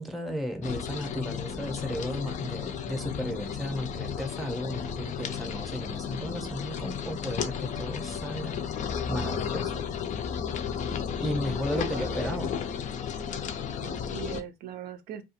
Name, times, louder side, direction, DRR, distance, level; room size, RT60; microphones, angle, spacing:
voice 1, 0.0-8.6 9.1-9.8 11.2-12.5, equal, ahead, 0.6 m, -34 dB
sound 1, 0.6-14.4, left 7 dB, 45° left, 0.4 m, -33 dB
voice 2, 11.4-12.4 13.8-15.2, right 10 dB, 65° right, 0.4 m, -41 dB
2.3 x 2.3 x 2.7 m
cardioid pair, 110°, 17 cm